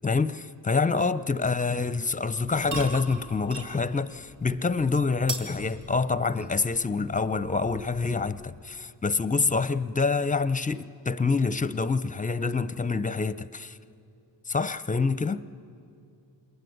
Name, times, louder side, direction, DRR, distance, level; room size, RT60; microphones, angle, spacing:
voice 1, 0.0-13.8 14.5-15.5, left 4 dB, 15° left, 0.7 m, -26 dB
sound 1, 2.3-8.7, right 2 dB, 75° right, 3.2 m, -41 dB
27.0 x 21.5 x 9.5 m
cardioid pair, 75°, 46 cm